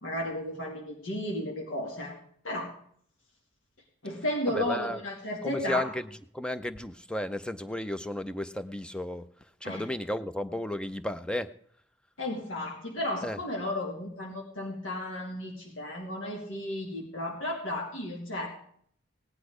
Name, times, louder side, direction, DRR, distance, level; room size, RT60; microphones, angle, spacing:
voice 1, 0.0-2.2 2.4-2.7 4.0-5.8 9.6-9.8 12.2-18.5, left 1 dB, 90° left, 0 dB, 2.3 m, -33 dB
voice 2, 4.5-5.0 5.4-9.3 9.6-11.5 13.2-13.4, left 1 dB, 5° left, 12 dB, 0.5 m, -33 dB
17.0 x 10.0 x 4.9 m, 0.63 s
head